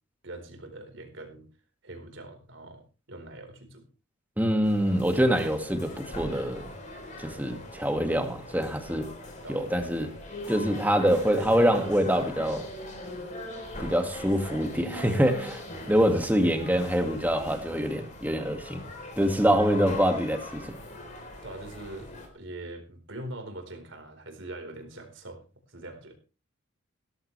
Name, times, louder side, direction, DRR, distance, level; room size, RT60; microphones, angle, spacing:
voice 1, 0.2-1.5 1.8-2.8 3.1-3.9 9.4-9.6 11.4-12.1 12.9-13.1 15.7-16.6 21.4-25.4 25.7-26.1, right 1 dB, 60° right, 4 dB, 4.5 m, -42 dB
voice 2, 4.4-6.7 7.2-9.1 9.5-10.1 10.5-12.7 13.8-18.8 19.2-20.8, equal, 10° right, 5 dB, 2.1 m, -25 dB
sound 1, 4.6-22.3, left 1 dB, 35° left, 3.9 m, -41 dB
16.5 x 14.0 x 3.4 m, 0.33 s
head